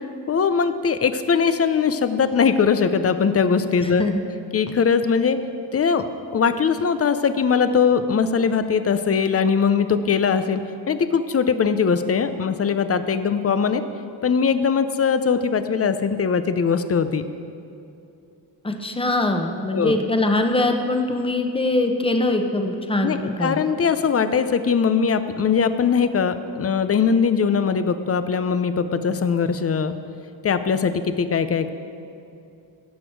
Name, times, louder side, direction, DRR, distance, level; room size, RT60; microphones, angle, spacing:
voice 1, 0.3-4.1 4.5-5.4 5.7-6.1 6.3-10.6 10.9-13.8 14.2-17.2 19.7-20.0 23.0-29.9 30.4-31.7, left 6 dB, 35° left, 11 dB, 0.6 m, -21 dB
voice 2, 3.8-4.3 18.6-23.6, left 2 dB, 10° left, 4 dB, 1.0 m, -22 dB
16.5 x 6.1 x 4.7 m, 2.7 s
cardioid pair, 85°, 43 cm